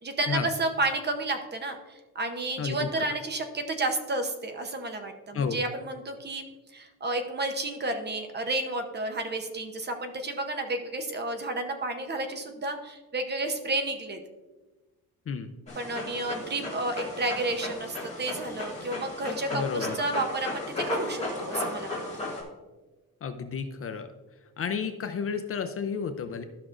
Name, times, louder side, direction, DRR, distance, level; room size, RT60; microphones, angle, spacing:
voice 1, 0.0-6.5 6.7-14.2 15.8-22.0, right 2 dB, 30° right, 6 dB, 0.8 m, -31 dB
voice 2, 2.6-3.0 5.3-5.6 15.3-15.5 19.5-20.0 23.2-24.1 24.6-26.4, left 6 dB, 40° left, 8 dB, 0.4 m, -31 dB
Dog, 15.7-22.4, left 2 dB, 20° left, 2.1 m, -35 dB
13.0 x 6.0 x 2.5 m, 1.2 s
cardioid pair, 155°, 37 cm